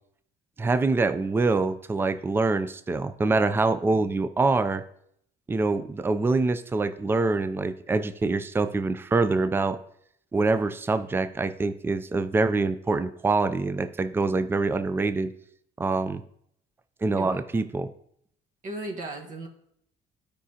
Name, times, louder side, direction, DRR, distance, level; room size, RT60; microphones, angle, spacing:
voice 1, 0.6-4.8 5.5-9.8 10.3-15.3 15.8-16.2 17.0-17.9, right 3 dB, 15° right, 11 dB, 0.4 m, -25 dB
voice 2, 18.6-19.5, right 2 dB, 50° right, 2 dB, 1.3 m, -36 dB
12.0 x 5.0 x 2.8 m, 0.71 s
cardioid pair, 110°, 17 cm